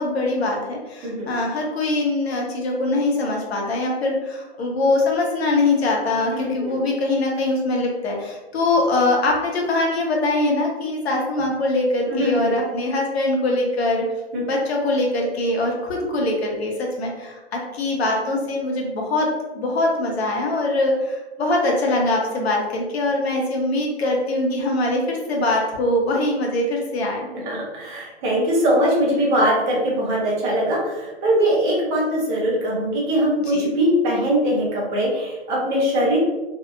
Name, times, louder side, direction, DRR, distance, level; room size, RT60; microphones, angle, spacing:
voice 1, 0.0-14.0 14.4-19.3 19.5-27.3 33.5-33.6, left 2 dB, 70° left, -1 dB, 0.8 m, -22 dB
voice 2, 1.0-1.3 6.3-6.8 12.1-12.5 14.3-14.4 27.5-36.2, equal, 20° right, -4 dB, 0.5 m, -21 dB
2.7 x 2.1 x 2.4 m, 1.1 s
hypercardioid pair, 140°, 32 cm